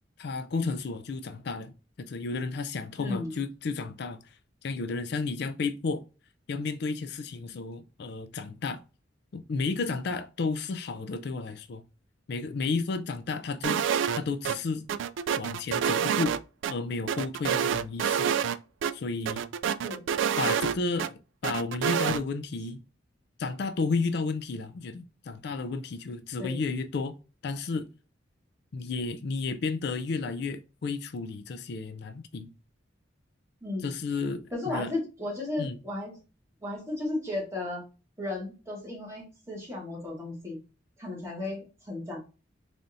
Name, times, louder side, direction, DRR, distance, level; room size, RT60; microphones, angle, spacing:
voice 1, 0.2-6.0 6.5-8.8 9.3-11.8 12.3-13.8 14.1-14.9 15.4-16.4 16.7-18.3 18.9-19.4 20.4-22.8 23.4-27.1 27.4-27.9 28.7-32.5 33.8-34.9 35.6-35.8, left 4 dB, 60° left, 0.4 m, -32 dB
voice 2, 3.0-3.3 19.8-20.0 26.4-26.5 33.6-33.9 34.5-36.2 36.6-37.8 38.2-40.6 41.0-42.2, left 2 dB, 15° right, 1.8 m, -34 dB
sound 1, 13.6-14.2 14.4-14.6 14.9-16.7 17.1-18.6 18.8-18.9 19.3-21.1 21.4-22.2, right 8 dB, 80° right, 0.3 m, -27 dB
3.9 x 3.4 x 2.5 m
head